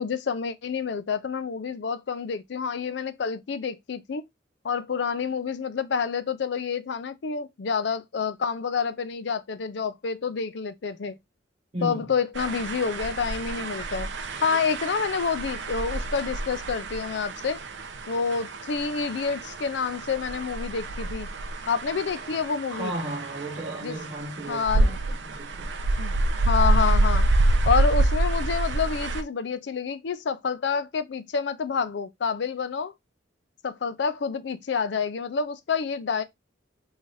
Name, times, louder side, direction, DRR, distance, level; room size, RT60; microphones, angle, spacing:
voice 1, 0.0-4.2 4.6-11.1 11.8-14.1 14.4-17.6 18.1-21.3 21.7-22.9 23.8-24.0 24.5-25.0 26.0-26.1 26.4-27.3 27.7-32.9 33.6-36.2, left 5 dB, 65° left, 0.4 m, -28 dB
voice 2, 11.7-12.1 22.7-25.7, right 1 dB, 30° right, 0.8 m, -35 dB
sound 1, 12.4-29.2, right 2 dB, 65° right, 0.5 m, -27 dB
3.9 x 2.6 x 3.1 m
head